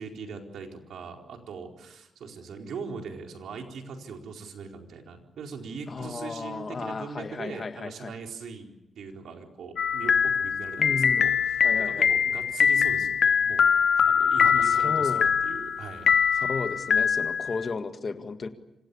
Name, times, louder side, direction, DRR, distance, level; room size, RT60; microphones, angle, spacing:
voice 1, 0.0-8.7 9.0-13.7 14.0-16.1, right 5 dB, 85° right, 2 dB, 4.4 m, -41 dB
voice 2, 5.9-8.1 10.8-11.3 11.6-12.1 14.4-15.3 16.4-18.5, left 4 dB, 35° left, 7 dB, 1.8 m, -34 dB
sound 1, 9.8-17.7, left 7 dB, 55° left, 1.1 m, -23 dB
27.5 x 26.5 x 7.1 m, 0.89 s
wide cardioid pair, 170°, 0 cm